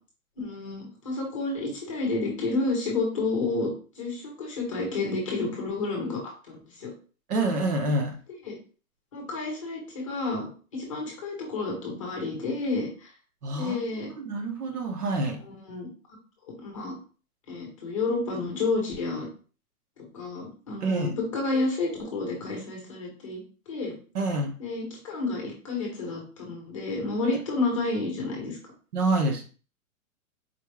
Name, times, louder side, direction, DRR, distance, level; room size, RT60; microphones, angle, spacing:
voice 1, 0.4-3.7 4.0-6.2 6.5-6.9 8.4-8.6 9.1-12.9 13.5-14.1 15.7-15.9 16.6-16.9 17.5-19.3 20.1-23.4 23.7-23.9 24.6-28.6, left 3 dB, 25° left, -1 dB, 0.8 m, -30 dB
voice 2, 7.3-8.2 13.4-13.8 14.2-15.4 20.8-21.1 24.1-24.5 28.9-29.4, right 2 dB, 90° right, 3 dB, 1.2 m, -27 dB
4.4 x 2.4 x 3.2 m, 0.37 s
hypercardioid pair, 180°, 44 cm